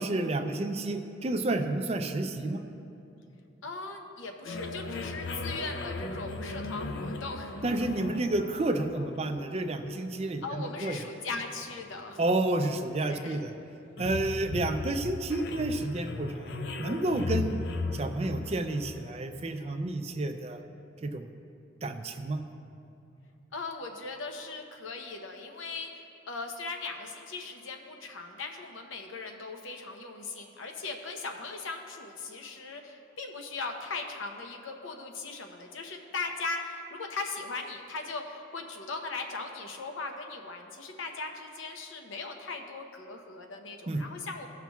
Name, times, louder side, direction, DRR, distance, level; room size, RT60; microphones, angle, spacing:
voice 1, 0.0-2.7 7.6-11.0 12.2-13.5 14.0-17.6 17.9-20.6 21.0-21.3 21.8-22.4 43.9-44.0, right 2 dB, 30° right, 7 dB, 0.4 m, -30 dB
voice 2, 3.6-7.5 10.4-12.2 13.0-13.4 23.5-44.5, left 3 dB, 85° left, 4 dB, 0.8 m, -39 dB
sound 1, 4.4-19.9, left 3 dB, 60° left, 0.5 m, -38 dB
16.5 x 5.8 x 2.4 m, 2.7 s
head